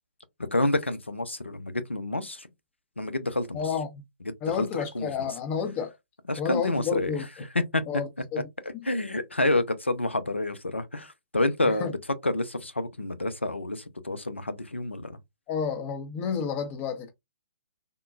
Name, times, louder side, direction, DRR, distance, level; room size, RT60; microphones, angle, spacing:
voice 1, 0.5-2.5 3.0-3.6 4.6-4.7 4.9-5.3 6.3-7.1 7.7-7.8 8.9-12.0 12.2-15.2, left 2 dB, 90° left, 0.6 m, -28 dB
voice 2, 3.5-4.0 4.4-5.9 6.4-7.3 7.9-8.5 11.6-11.9 15.5-17.1, left 6 dB, 25° left, 0.7 m, -30 dB
3.6 x 2.2 x 2.4 m
figure-of-eight pair, 125°, 6 cm